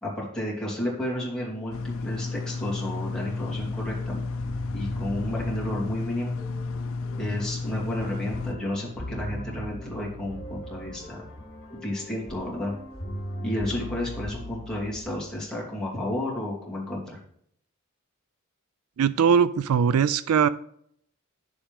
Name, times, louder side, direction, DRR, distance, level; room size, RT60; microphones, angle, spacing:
voice 1, 0.0-4.2 4.7-6.4 7.1-11.2 11.7-12.7 13.4-17.2, left 1 dB, 5° left, -5 dB, 2.7 m, -32 dB
sound 1, 1.7-8.5, left 3 dB, 65° left, 0.6 m, -32 dB
sound 2, 3.6-15.7, equal, 50° left, 2.8 m, -40 dB
voice 2, 19.0-20.5, right 7 dB, 75° right, 16 dB, 0.3 m, -21 dB
9.9 x 7.1 x 3.5 m, 0.67 s
head